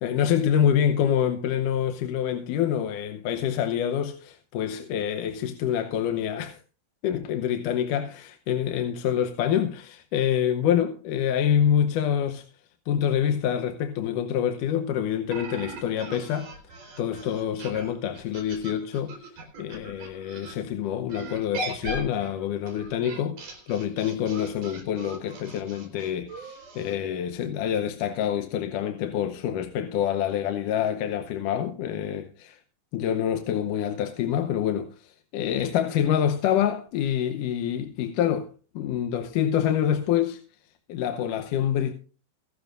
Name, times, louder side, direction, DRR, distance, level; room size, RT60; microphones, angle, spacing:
voice 1, 0.0-6.6 7.0-12.5 12.9-16.5 17.0-19.2 19.6-32.5 32.9-38.5 38.8-40.4 40.9-41.9, left 9 dB, 85° left, 2.4 m, -26 dB
sound 1, 15.3-20.5 21.1-27.0, right 2 dB, 80° right, 5.7 m, -39 dB
24.0 x 12.0 x 2.5 m
omnidirectional pair, 3.6 m